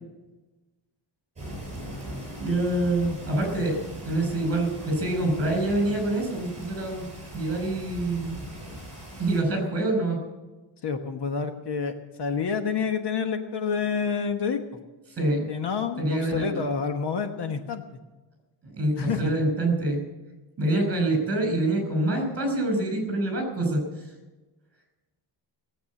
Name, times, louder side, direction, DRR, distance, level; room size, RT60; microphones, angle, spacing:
sound 1, 1.4-9.4, right 1 dB, 15° right, 6.9 m, -40 dB
voice 1, 2.4-7.1 7.3-8.4 9.2-10.2 15.2-15.5 16.0-16.7 18.6-20.1 20.6-23.8, right 1 dB, 30° right, 3 dB, 5.6 m, -26 dB
voice 2, 10.8-14.6 15.5-17.8 18.9-19.3, left 6 dB, 55° left, 6 dB, 1.3 m, -28 dB
17.5 x 8.4 x 8.4 m, 1.2 s
wide cardioid pair, 170°, 49 cm